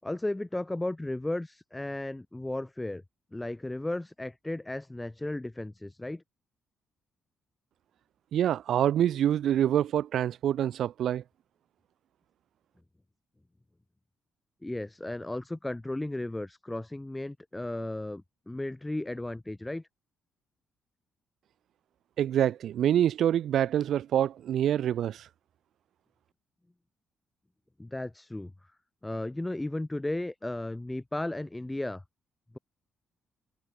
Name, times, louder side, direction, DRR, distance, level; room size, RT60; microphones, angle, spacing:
voice 1, 0.0-3.0 3.3-6.2 14.6-19.9 27.8-28.7 29.0-32.0, left 1 dB, 10° left, 4.7 m, -35 dB
voice 2, 8.3-11.2 22.2-25.3, right 10 dB, 70° right, 0.8 m, -26 dB
cardioid pair, 90°, 0 cm